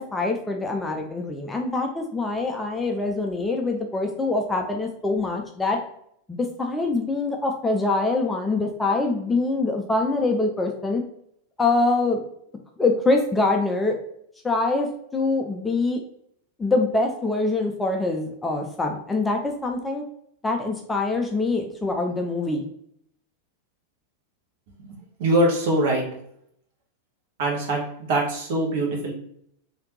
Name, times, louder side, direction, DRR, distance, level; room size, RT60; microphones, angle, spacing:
voice 1, 0.0-5.8 6.4-11.0 11.6-12.2 12.8-13.9 14.4-16.0 16.6-20.0 20.4-22.6, left 3 dB, 10° left, 2 dB, 0.5 m, -24 dB
voice 2, 25.2-26.1 27.4-29.1, right 1 dB, 50° right, -1 dB, 1.2 m, -23 dB
3.2 x 2.8 x 3.1 m, 0.69 s
figure-of-eight pair, 90°, 0 cm